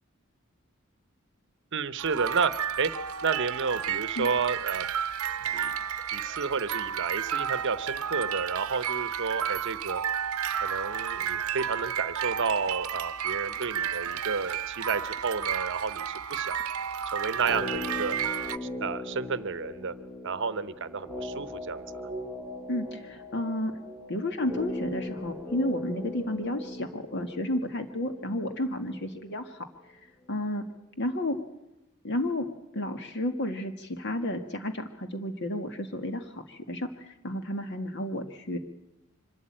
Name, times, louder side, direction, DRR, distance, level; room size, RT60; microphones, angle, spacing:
voice 1, 1.7-2.5 2.8-2.9 3.2-4.9 5.5-5.7 6.1-10.0 10.6-16.6 17.1-18.2 18.6-19.9 20.2-21.8, right 5 dB, 60° right, 14 dB, 0.8 m, -31 dB
sound 1, 2.0-18.6, right 8 dB, 85° right, 0.7 m, -32 dB
sound 2, 17.3-29.5 29.7-29.8, left 1 dB, 5° right, 3.5 m, -39 dB
voice 2, 22.7-23.7 24.1-29.7 30.3-30.6 31.0-31.4 32.0-32.5 32.7-36.9 37.2-38.6, left 1 dB, 55° left, 7 dB, 1.8 m, -31 dB
25.0 x 13.0 x 8.8 m, 0.95 s
head